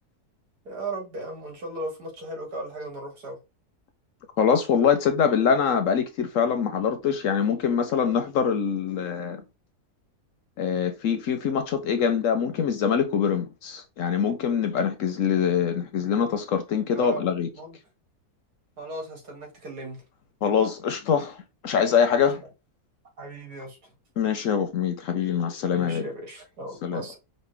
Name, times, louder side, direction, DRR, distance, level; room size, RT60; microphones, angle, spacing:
voice 1, 0.7-3.4 16.9-17.3 17.5-17.8 18.8-20.0 22.2-22.5 23.2-23.8 25.7-27.2, right 2 dB, 75° right, 2.3 m, -36 dB
voice 2, 4.4-9.4 10.6-17.5 20.4-21.4 21.6-22.4 24.2-26.1 26.8-27.0, left 7 dB, 65° left, 0.9 m, -24 dB
5.4 x 2.4 x 3.3 m
omnidirectional pair, 1.7 m